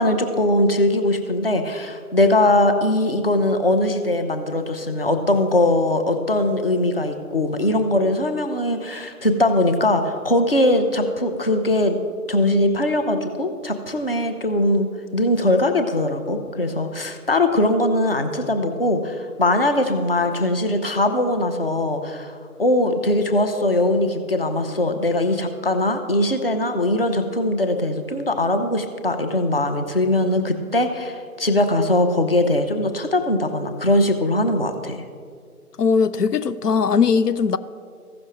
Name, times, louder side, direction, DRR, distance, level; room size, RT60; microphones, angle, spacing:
voice 1, 0.0-12.0 12.3-14.9 15.1-35.0, left 1 dB, 40° left, 0.7 m, -21 dB
voice 2, 35.8-37.6, left 5 dB, 85° left, 0.6 m, -19 dB
15.5 x 6.3 x 3.0 m
figure-of-eight pair, 155°, 46 cm